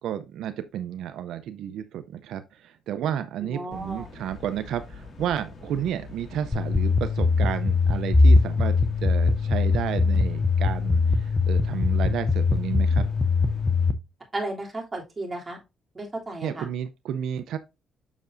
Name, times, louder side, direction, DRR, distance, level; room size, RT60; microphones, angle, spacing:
voice 1, 0.0-8.7 9.0-13.1 16.4-17.6, right 10 dB, 80° right, 0.6 m, -32 dB
voice 2, 3.4-4.1 14.3-15.6 15.9-16.7, right 2 dB, 25° right, 3.0 m, -34 dB
sound 1, 3.7-13.9, left 4 dB, 50° left, 2.4 m, -44 dB
sound 2, 6.5-13.9, left 3 dB, 20° left, 0.7 m, -21 dB
7.1 x 6.6 x 2.6 m
cardioid pair, 90°, 0 cm